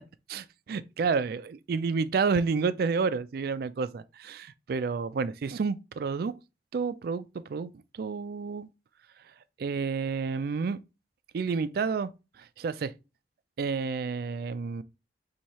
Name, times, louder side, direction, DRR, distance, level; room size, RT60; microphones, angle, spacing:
voice 1, 0.3-6.3 6.7-8.7 9.6-10.8 11.3-12.1 12.4-12.9 13.6-14.8, right 5 dB, 60° right, 0.3 m, -30 dB
4.6 x 2.8 x 4.2 m
head